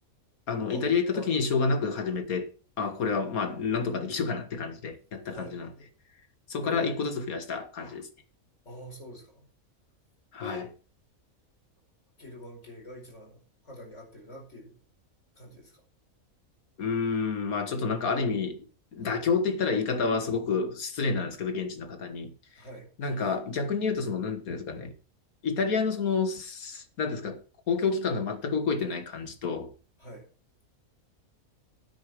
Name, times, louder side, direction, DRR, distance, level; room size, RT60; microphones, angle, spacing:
voice 1, 0.5-2.5 2.8-5.7 6.5-8.1 10.3-10.7 16.8-18.7 18.9-22.3 23.0-24.9 25.4-27.4 27.7-29.7, left 5 dB, 75° left, 2.0 m, -29 dB
voice 2, 6.6-7.1 8.7-9.5 10.4-10.7 12.2-14.8 15.4-15.8 19.0-19.2 22.6-22.9 30.0-30.3, left 1 dB, 55° left, 5.2 m, -44 dB
9.8 x 9.0 x 4.8 m
omnidirectional pair, 1.5 m